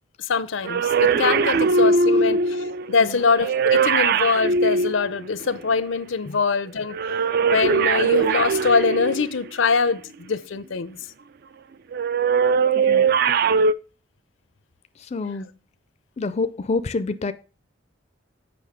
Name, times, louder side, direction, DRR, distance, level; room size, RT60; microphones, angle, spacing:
voice 1, 0.3-7.0 7.5-11.0, left 5 dB, 85° left, 0.6 m, -23 dB
sound 1, 0.6-5.7 6.9-9.5 11.9-13.7, right 4 dB, 55° right, 0.4 m, -21 dB
voice 2, 12.7-13.1 15.0-15.5 16.2-17.3, left 3 dB, 35° left, 0.4 m, -28 dB
7.7 x 5.6 x 5.0 m
head